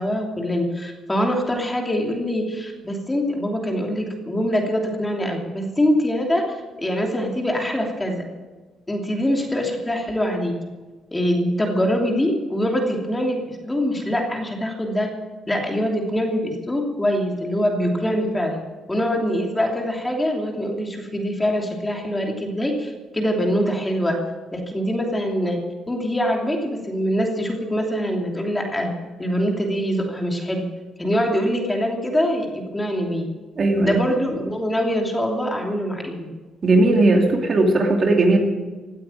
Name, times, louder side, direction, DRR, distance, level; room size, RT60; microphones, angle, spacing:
voice 1, 0.0-8.2 8.9-10.5 11.1-15.1 15.5-18.6 18.9-24.2 24.5-25.6 25.9-28.9 29.2-30.6 31.0-33.3 33.8-36.3, equal, 15° left, 1 dB, 3.0 m, -24 dB
voice 2, 33.6-34.0 36.6-38.4, right 2 dB, 45° right, 2 dB, 2.8 m, -17 dB
17.0 x 9.1 x 9.0 m, 1.3 s
cardioid pair, 90°, 0 cm